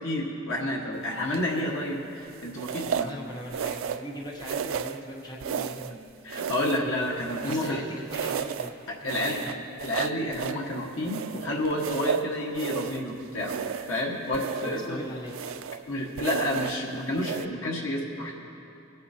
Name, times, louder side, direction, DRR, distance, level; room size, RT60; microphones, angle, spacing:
voice 1, 0.0-3.1 6.2-7.8 8.9-9.4 9.8-13.5 13.9-15.0 15.9-18.3, left 1 dB, 80° left, -2 dB, 1.5 m, -30 dB
sound 1, 1.3-1.7 2.6-3.2 3.5-4.1 4.4-5.0 5.4-6.0 6.3-7.8 8.1-8.7 9.1-10.6 11.0-13.1 13.4-14.0 14.3-14.9 15.3-15.8 16.2-16.8 17.2-17.5, right 8 dB, 80° right, 0.3 m, -33 dB
voice 2, 2.8-5.9 7.4-8.7 9.2-9.6 14.6-15.6, equal, 20° left, -2 dB, 0.9 m, -40 dB
23.5 x 8.3 x 2.8 m, 2.9 s
head